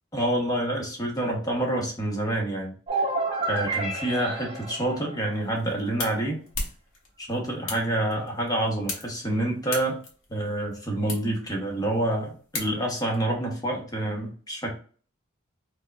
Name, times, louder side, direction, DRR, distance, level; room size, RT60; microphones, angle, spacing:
voice 1, 0.1-2.7 3.5-6.4 7.2-10.0 10.3-14.7, right 1 dB, 20° left, 0 dB, 0.8 m, -27 dB
sound 1, 2.9-5.7, right 2 dB, 30° right, 1.0 m, -30 dB
sound 2, 5.3-13.2, left 3 dB, 80° left, 1.0 m, -39 dB
4.4 x 2.1 x 2.3 m, 0.41 s
head